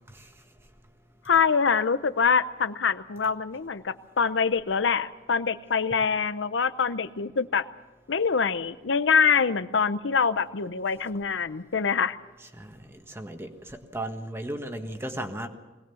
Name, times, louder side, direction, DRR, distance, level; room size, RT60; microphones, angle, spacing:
voice 1, 1.3-7.6 8.1-12.2, left 6 dB, 85° left, 13 dB, 0.7 m, -25 dB
voice 2, 12.6-15.5, right 1 dB, 15° right, 5 dB, 1.5 m, -36 dB
21.0 x 18.5 x 7.1 m, 1.1 s
head